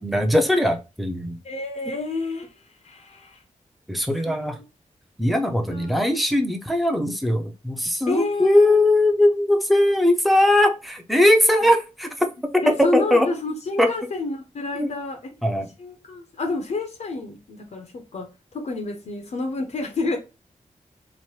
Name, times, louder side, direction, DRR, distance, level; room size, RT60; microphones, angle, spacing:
voice 1, 0.0-1.4 3.9-4.6 5.2-12.3 12.5-13.3 13.8-13.9 14.8-14.9 15.4-15.7, left 1 dB, ahead, 0.5 m, -20 dB
voice 2, 1.4-2.5 2.8-3.4 4.3-4.6 5.7-6.0 8.1-8.9 12.6-15.3 15.8-20.2, left 3 dB, 60° left, 0.5 m, -29 dB
2.9 x 2.1 x 3.0 m
wide cardioid pair, 105°, 13 cm